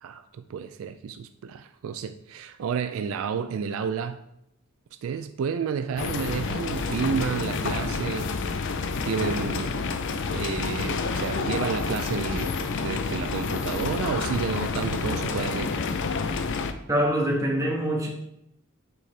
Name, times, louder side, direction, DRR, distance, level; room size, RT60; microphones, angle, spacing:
voice 1, 0.0-4.2 5.0-8.7 9.0-9.7 10.3-15.8, right 6 dB, 65° right, 0.3 m, -31 dB
sound 1, 6.0-16.7, left 4 dB, 60° left, 0.5 m, -29 dB
voice 2, 16.9-18.1, right 1 dB, 15° right, 1.3 m, -24 dB
8.8 x 4.2 x 3.3 m
head